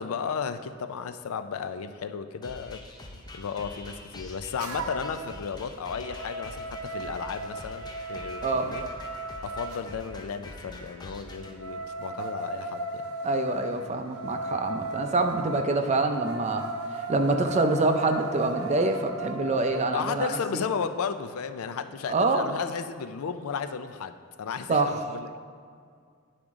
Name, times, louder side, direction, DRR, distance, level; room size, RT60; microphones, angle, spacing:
voice 1, 0.0-2.8 3.1-8.9 9.4-13.0 14.3-14.5 15.3-15.4 19.9-25.3, left 6 dB, 80° left, 10 dB, 0.4 m, -34 dB
sound 1, 2.4-11.5, left 1 dB, 20° left, 0.6 m, -45 dB
sound 2, 4.6-5.2 5.6-9.8 11.3-19.9, right 2 dB, 90° right, 0.7 m, -36 dB
voice 2, 13.2-16.6 17.1-20.6 22.1-22.5 24.7-24.9, right 3 dB, 30° right, 6 dB, 0.5 m, -26 dB
10.0 x 5.0 x 3.6 m, 2.1 s
head